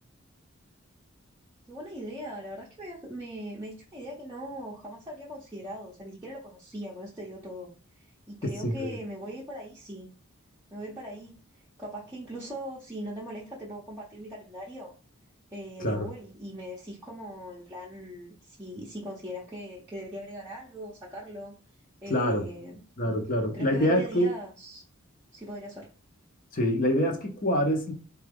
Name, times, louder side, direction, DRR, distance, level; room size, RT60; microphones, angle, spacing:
voice 1, 1.7-10.1 10.7-11.4 11.8-14.9 15.5-21.5 22.0-22.8 23.5-24.8 25.3-25.9, equal, 15° right, 0.7 m, -40 dB
voice 2, 8.4-8.9 15.8-16.1 22.1-22.5 23.0-24.3 26.5-27.9, equal, 40° left, 0.7 m, -26 dB
4.1 x 2.3 x 3.4 m
head